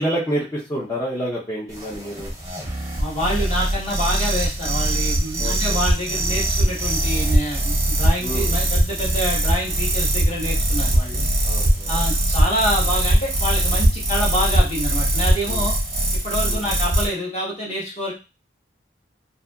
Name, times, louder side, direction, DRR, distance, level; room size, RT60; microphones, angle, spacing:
voice 1, 0.0-2.3 5.4-5.8 8.2-8.6 11.4-12.0 15.5-15.7 16.5-16.7, equal, 20° left, -8 dB, 0.6 m, -28 dB
sound 1, 1.7-17.1, right 1 dB, 15° right, 0.7 m, -21 dB
voice 2, 3.0-11.3 11.9-15.7 16.2-18.1, equal, 35° left, -4 dB, 1.2 m, -27 dB
2.7 x 2.6 x 2.3 m, 0.29 s
head